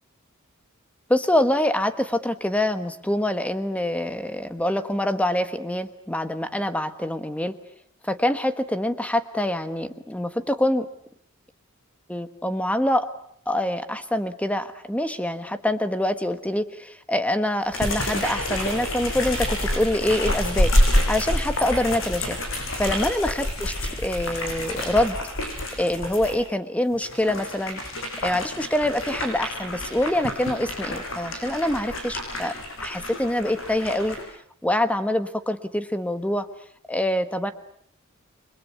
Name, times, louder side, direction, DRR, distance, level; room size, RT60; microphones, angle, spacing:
voice 1, 1.1-7.6 8.0-10.9 12.1-13.1 13.5-20.7 21.1-22.4 22.8-25.2 25.8-27.8 28.2-32.5 32.8-34.2 34.6-36.5 36.9-37.5, left 1 dB, 5° left, 10 dB, 1.3 m, -25 dB
sound 1, 17.7-26.3 26.9-34.2, left 1 dB, 65° left, 6.4 m, -27 dB
29.0 x 22.5 x 8.2 m, 0.67 s
head